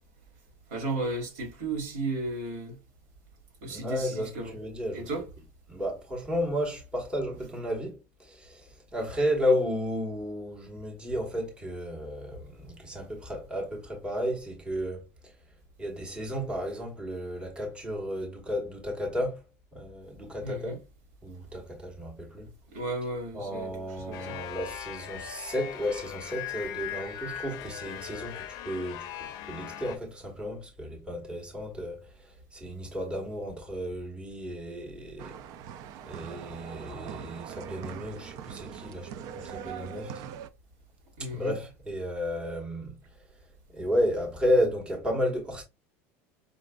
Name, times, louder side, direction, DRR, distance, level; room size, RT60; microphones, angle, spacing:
voice 1, 0.7-2.8 3.6-4.6 4.9-5.2 20.4-20.8 22.7-24.4 37.7-37.8 41.2-41.5, right 2 dB, 85° right, 2.1 m, -34 dB
voice 2, 3.7-5.1 5.7-15.3 15.8-19.4 19.7-20.8 21.2-22.5 23.3-35.4 36.0-40.2 41.2-43.0 43.7-45.6, equal, 15° right, 1.2 m, -33 dB
sound 1, 24.1-30.0, left 11 dB, 55° left, 0.6 m, -39 dB
sound 2, 35.2-40.5, right 9 dB, 55° right, 0.4 m, -42 dB
5.1 x 2.4 x 2.2 m
supercardioid pair, 135°, 7 cm